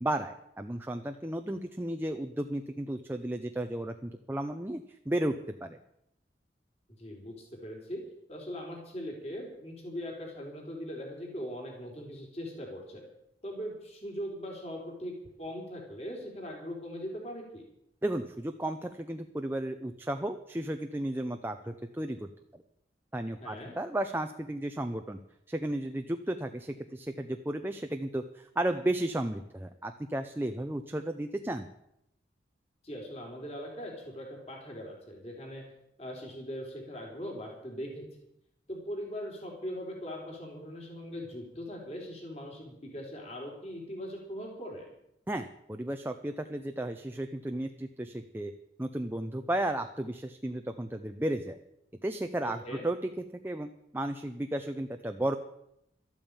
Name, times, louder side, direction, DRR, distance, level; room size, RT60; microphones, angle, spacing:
voice 1, 0.0-5.3 5.6-5.8 18.0-22.3 23.1-25.2 25.5-31.7 45.3-48.5 48.8-51.6 52.0-53.0 53.4-55.4, right 1 dB, 10° right, 6 dB, 0.6 m, -34 dB
voice 2, 7.0-8.0 8.3-13.0 13.4-17.6 23.4-23.8 32.8-35.6 36.0-38.0 38.7-44.9 52.4-52.9, equal, 35° left, 0 dB, 3.8 m, -40 dB
13.0 x 8.9 x 8.8 m, 0.79 s
head